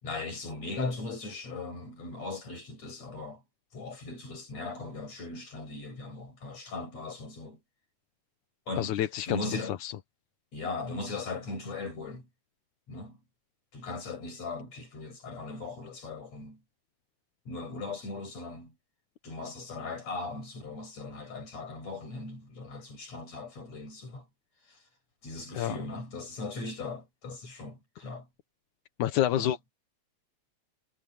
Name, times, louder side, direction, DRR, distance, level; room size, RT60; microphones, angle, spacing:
voice 1, 0.0-3.4 3.7-7.6 8.7-9.0 9.2-9.8 10.5-12.3 12.9-13.2 13.7-16.6 17.5-18.7 19.2-24.2 25.2-28.3 29.3-29.5, left 3 dB, 65° left, 7.8 m, -38 dB
voice 2, 8.8-9.9 25.5-25.8 29.0-29.7, left 12 dB, 90° left, 2.6 m, -29 dB
omnidirectional pair, 3.3 m